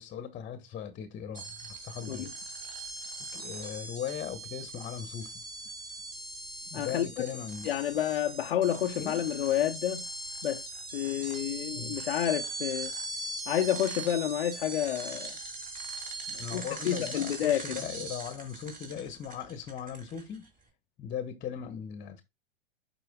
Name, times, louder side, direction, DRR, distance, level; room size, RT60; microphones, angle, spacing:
voice 1, 0.0-2.3 3.3-5.4 6.7-7.7 9.0-9.2 11.7-12.0 16.3-20.5 21.0-22.2, left 8 dB, 25° left, 1.1 m, -38 dB
sound 1, 1.3-20.5, right 2 dB, 30° right, 2.7 m, -40 dB
voice 2, 6.7-7.1 7.6-10.0 10.4-10.7 10.9-12.9 13.5-15.3 16.5-17.8, left 11 dB, 80° left, 0.7 m, -29 dB
12.0 x 4.5 x 2.2 m
hypercardioid pair, 100°, 29 cm